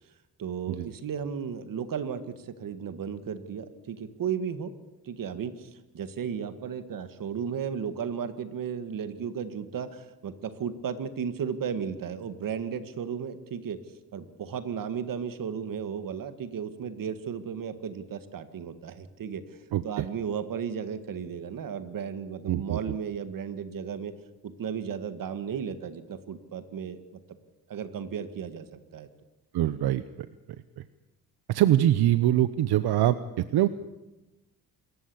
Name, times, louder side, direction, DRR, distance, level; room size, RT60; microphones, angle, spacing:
voice 1, 0.4-4.7 5.0-13.8 14.1-19.4 19.8-24.1 24.4-27.0 27.7-29.1, right 7 dB, 60° right, 11 dB, 1.8 m, -34 dB
voice 2, 19.7-20.1 22.5-22.8 29.5-30.3 31.5-33.7, right 12 dB, 85° right, 13 dB, 0.9 m, -24 dB
26.0 x 14.5 x 8.6 m, 1.0 s
cardioid pair, 135°, 37 cm